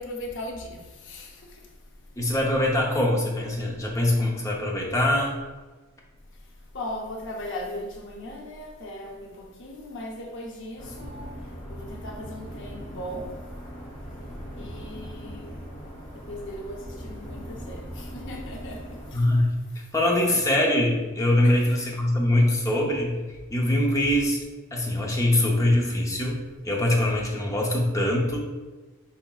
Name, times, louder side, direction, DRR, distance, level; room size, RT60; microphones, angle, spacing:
voice 1, 0.0-1.6 6.7-11.3 11.7-13.4 14.6-15.6 16.1-19.3 21.4-21.8, left 1 dB, 60° left, 1 dB, 0.7 m, -38 dB
voice 2, 2.2-5.4 19.1-19.5 19.9-23.2 23.5-24.4 24.7-28.4, left 1 dB, 15° left, -2 dB, 0.7 m, -23 dB
sound 1, 10.8-19.1, equal, 35° left, 1.4 m, -39 dB
5.6 x 3.5 x 2.4 m, 1.3 s
head